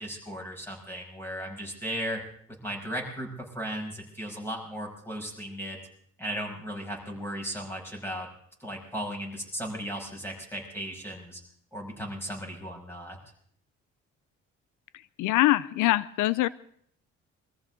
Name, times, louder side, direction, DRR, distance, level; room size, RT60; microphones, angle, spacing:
voice 1, 0.0-2.2 2.6-5.8 6.2-8.3 8.6-11.4 11.7-13.2, equal, 5° left, 0 dB, 6.2 m, -36 dB
voice 2, 15.2-16.5, left 17 dB, 85° left, 19 dB, 0.5 m, -23 dB
23.5 x 14.5 x 3.8 m, 0.66 s
cardioid pair, 90°, 30 cm